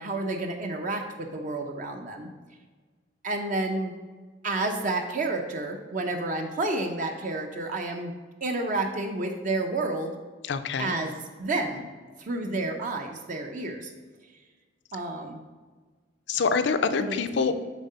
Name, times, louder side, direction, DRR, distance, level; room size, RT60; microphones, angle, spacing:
voice 1, 0.0-2.3 3.2-3.9 4.4-8.1 8.4-10.1 10.8-11.9 12.2-13.9 14.9-15.4 16.9-17.1, right 2 dB, 45° right, 4 dB, 0.6 m, -30 dB
voice 2, 10.4-11.0 16.3-17.5, left 5 dB, 65° left, 10 dB, 0.5 m, -26 dB
7.3 x 3.7 x 5.4 m, 1.4 s
head